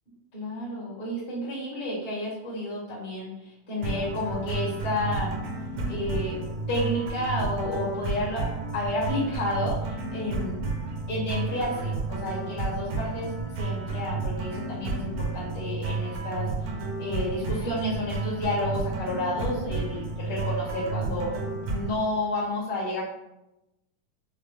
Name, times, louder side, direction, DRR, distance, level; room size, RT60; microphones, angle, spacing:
voice 1, 0.3-5.4 5.9-6.4 6.7-10.6 11.1-16.7 17.0-21.4 21.7-23.0, left 1 dB, 45° left, -8 dB, 0.6 m, -31 dB
sound 1, 3.8-22.0, right 3 dB, 80° right, 1.4 m, -31 dB
5.0 x 2.0 x 3.1 m, 0.93 s
omnidirectional pair, 3.5 m